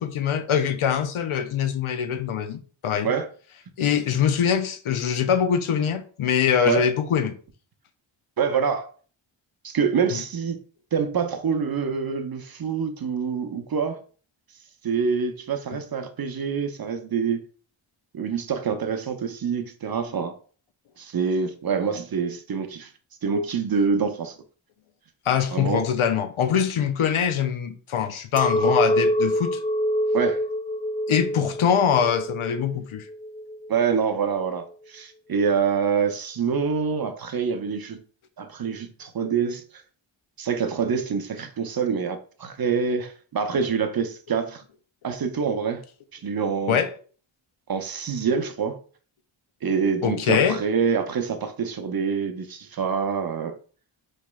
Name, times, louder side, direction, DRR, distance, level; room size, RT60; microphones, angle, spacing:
voice 1, 0.0-3.1 3.8-7.3 10.1-10.2 25.3-29.6 31.1-33.0 46.7-46.9 50.0-50.6, left 8 dB, 80° left, 0.6 m, -23 dB
voice 2, 8.4-8.9 9.6-10.6 10.9-14.0 14.8-17.5 18.1-20.3 21.0-22.9 23.2-24.4 25.5-25.8 30.1-30.4 33.7-38.0 38.4-39.6 40.4-44.6 45.0-45.8 46.1-46.8 47.7-48.8 49.6-53.6, right 6 dB, 50° right, 0.6 m, -26 dB
Chink clink, 28.4-33.8, equal, 20° left, 0.3 m, -25 dB
4.4 x 3.0 x 2.2 m
cardioid pair, 45°, 49 cm